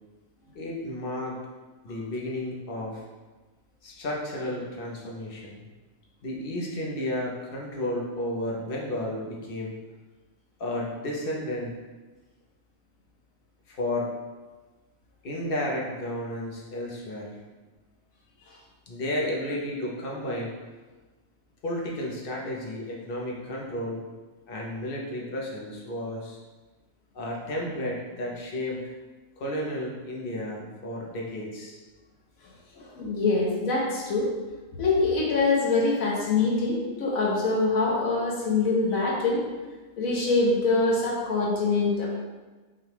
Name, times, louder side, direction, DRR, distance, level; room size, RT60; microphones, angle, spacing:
voice 1, 0.5-1.4 1.8-3.0 3.8-5.6 6.2-9.7 10.6-11.7 13.7-14.1 15.2-17.4 18.9-20.5 21.6-24.0 24.5-26.4 27.1-28.8 29.4-31.8, left 1 dB, 50° left, -2 dB, 0.9 m, -32 dB
voice 2, 32.7-34.3 34.8-39.4 40.0-42.1, left 3 dB, 80° left, -3 dB, 1.4 m, -24 dB
5.4 x 2.3 x 3.4 m, 1.3 s
omnidirectional pair, 1.4 m